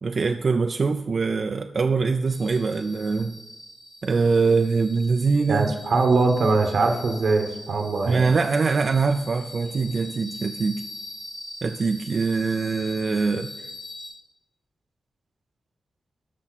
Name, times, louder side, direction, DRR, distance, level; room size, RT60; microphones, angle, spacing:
voice 1, 0.0-3.4 4.0-5.7 8.1-10.8 11.6-13.5, right 4 dB, 50° right, 6 dB, 0.4 m, -23 dB
sound 1, 2.3-14.1, left 1 dB, 60° left, 3.5 m, -42 dB
voice 2, 5.5-8.2, right 3 dB, 75° right, 4 dB, 1.1 m, -22 dB
12.5 x 5.4 x 4.1 m, 1.0 s
cardioid pair, 85°, 0 cm